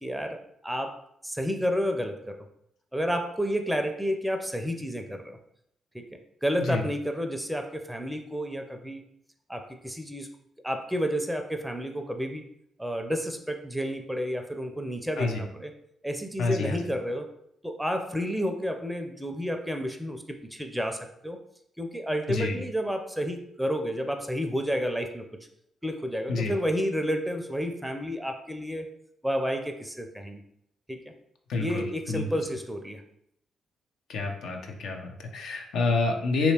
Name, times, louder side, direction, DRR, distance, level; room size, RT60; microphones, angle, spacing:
voice 1, 0.0-2.5 2.9-5.4 5.9-6.1 6.4-9.0 9.5-10.3 10.6-12.4 12.8-15.7 16.0-17.3 17.6-21.4 21.8-25.3 25.8-28.9 29.2-30.4 30.9-31.0 31.6-33.0, equal, 5° right, 5 dB, 0.5 m, -30 dB
voice 2, 16.4-16.8 22.3-22.6 26.3-26.5 31.5-32.3 34.1-36.5, left 3 dB, 70° left, 3 dB, 0.5 m, -28 dB
3.1 x 2.9 x 2.8 m, 0.74 s
hypercardioid pair, 45°, 0 cm